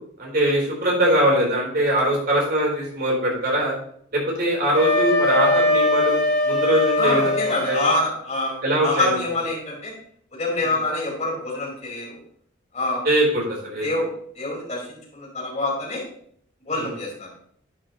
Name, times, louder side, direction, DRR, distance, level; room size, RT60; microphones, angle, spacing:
voice 1, 0.2-3.7 4.1-7.8 8.6-9.2 10.6-10.7 13.0-13.9 16.7-16.9, right 1 dB, 50° right, -3 dB, 4.1 m, -22 dB
Wind instrument woodwind instrument, 4.7-7.9, left 2 dB, 10° left, 3.2 m, -21 dB
voice 2, 7.0-9.9 10.3-12.2 12.7-13.0 13.8-14.1 14.3-16.0 16.6-17.1, left 2 dB, 35° left, -6 dB, 4.9 m, -26 dB
11.0 x 9.4 x 3.1 m, 0.64 s
head